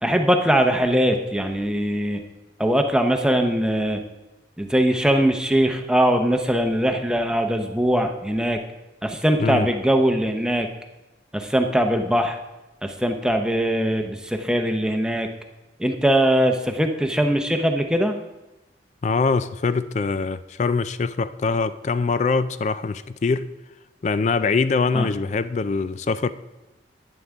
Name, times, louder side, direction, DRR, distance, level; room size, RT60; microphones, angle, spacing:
voice 1, 0.0-2.2 2.6-4.0 4.6-8.6 9.0-10.7 11.3-12.4 12.8-15.3 15.8-18.2 24.9-25.1, equal, 5° right, 0.7 m, -21 dB
voice 2, 19.0-23.5 24.0-26.3, left 4 dB, 40° left, 0.4 m, -23 dB
11.0 x 10.0 x 3.6 m
head